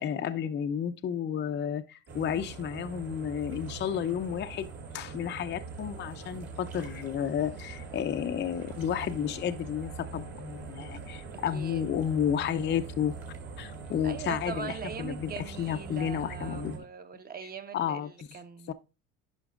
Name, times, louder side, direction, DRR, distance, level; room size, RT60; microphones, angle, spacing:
voice 1, 0.0-4.7 4.9-13.1 13.6-16.8 17.7-18.1 18.7-18.8, left 9 dB, 35° left, 0.6 m, -32 dB
sound 1, 2.1-16.8, right 4 dB, 50° right, 2.6 m, -42 dB
voice 2, 11.5-11.8 14.0-18.7, right 6 dB, 25° right, 1.2 m, -41 dB
10.5 x 5.8 x 2.5 m
supercardioid pair, 90°, 33 cm